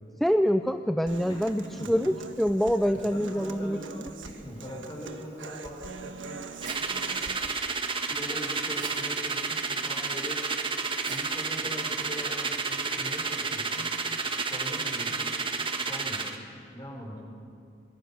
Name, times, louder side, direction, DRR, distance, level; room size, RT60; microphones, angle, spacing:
voice 1, 0.2-3.8, equal, ahead, 8 dB, 0.5 m, -25 dB
Human voice / Acoustic guitar, 1.1-7.5, right 3 dB, 80° right, 1.4 m, -43 dB
voice 2, 1.3-1.9 2.8-3.9 4.4-6.4 8.1-10.4 11.1-13.9 14.5-15.4 15.9-16.3 16.7-17.2, equal, 25° left, -2 dB, 6.0 m, -41 dB
sound 1, 6.4-13.0, right 5 dB, 45° right, 2.0 m, -50 dB
sound 2, 6.6-16.4, right 4 dB, 30° right, 1.3 m, -31 dB
23.5 x 21.5 x 6.3 m, 2.4 s
head